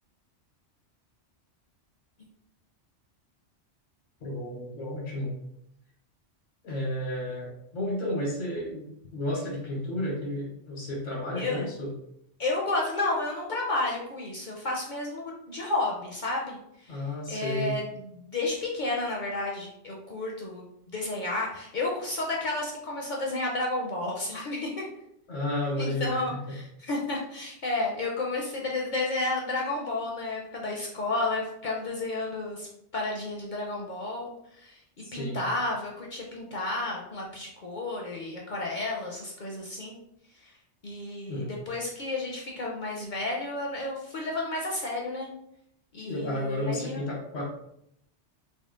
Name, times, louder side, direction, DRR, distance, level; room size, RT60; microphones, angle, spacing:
voice 1, 4.2-5.3 6.6-11.9 16.9-17.7 25.3-26.2 35.0-35.4 41.3-41.5 46.1-47.4, left 1 dB, 85° left, -4 dB, 1.3 m, -32 dB
voice 2, 11.3-11.7 12.4-24.8 25.8-34.8 35.1-40.0 40.3-40.5 40.8-45.3 45.9-47.2, left 2 dB, 50° left, -2 dB, 0.6 m, -32 dB
3.7 x 2.0 x 3.6 m, 0.76 s
omnidirectional pair, 1.2 m